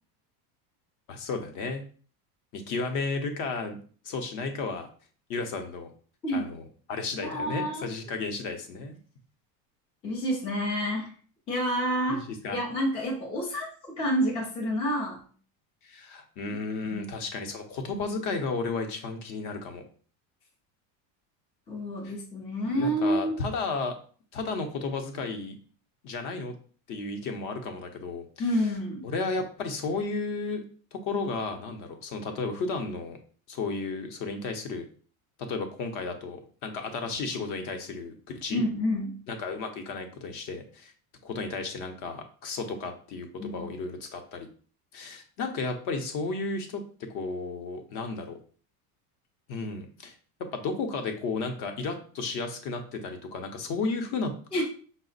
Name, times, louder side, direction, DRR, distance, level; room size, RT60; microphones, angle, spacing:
voice 1, 1.1-1.8 2.5-3.8 4.0-4.9 5.3-5.9 6.3-6.6 6.9-9.0 12.1-12.6 15.8-19.8 22.0-22.1 22.7-24.0 24.3-25.6 26.0-26.5 26.9-28.7 29.0-30.6 30.9-33.2 33.5-34.9 35.4-38.1 38.4-38.7 39.3-40.9 41.2-44.5 44.9-46.8 47.1-48.4 49.5-50.1 50.5-54.3, left 3 dB, 45° left, 6 dB, 0.7 m, -33 dB
voice 2, 7.2-7.9 10.0-11.1 11.5-13.7 14.0-15.2 16.5-16.6 16.8-17.1 21.7-23.4 28.4-29.1 38.5-39.2 43.4-43.7 54.5-54.6, equal, 15° left, -2 dB, 0.4 m, -29 dB
5.0 x 2.0 x 3.9 m, 0.43 s
cardioid pair, 160°, 46 cm